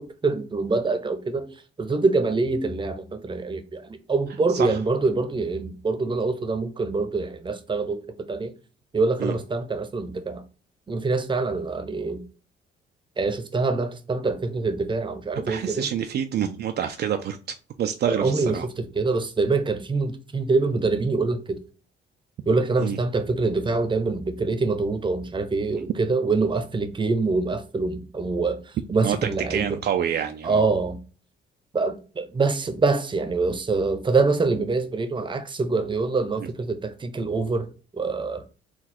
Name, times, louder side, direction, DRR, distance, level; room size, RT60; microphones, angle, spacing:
voice 1, 0.0-1.5 1.8-8.5 8.9-10.4 10.9-12.2 13.2-15.9 18.1-21.6 22.5-28.6 28.9-29.8 30.4-31.0 31.7-38.4, right 3 dB, 25° right, 0.7 m, -25 dB
voice 2, 4.5-4.8 9.2-9.3 15.3-17.4 17.8-18.7 22.8-23.0 25.7-25.9 29.0-30.7 36.4-36.5, right 9 dB, 55° right, 0.4 m, -27 dB
4.1 x 2.3 x 4.3 m
cardioid pair, 90°, 20 cm